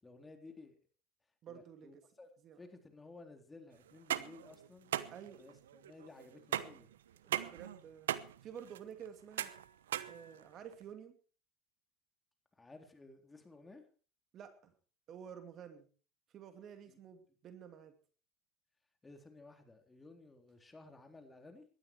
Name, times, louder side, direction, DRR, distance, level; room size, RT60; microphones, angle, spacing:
voice 1, 0.0-0.8 1.5-2.3 2.6-5.0 5.4-6.9 12.5-13.8 16.9-17.0 19.0-21.7, left 3 dB, 15° left, 6 dB, 3.7 m, -56 dB
voice 2, 1.4-2.0 2.4-2.6 5.1-5.4 7.2-8.1 8.4-9.5 10.1-11.2 14.3-14.7 15.1-15.9 16.3-17.9, right 8 dB, 45° right, 8 dB, 2.6 m, -51 dB
sound 1, 3.9-10.8, right 11 dB, 85° right, 0.9 m, -40 dB
18.0 x 12.5 x 4.7 m, 0.39 s
hypercardioid pair, 90°, 0 cm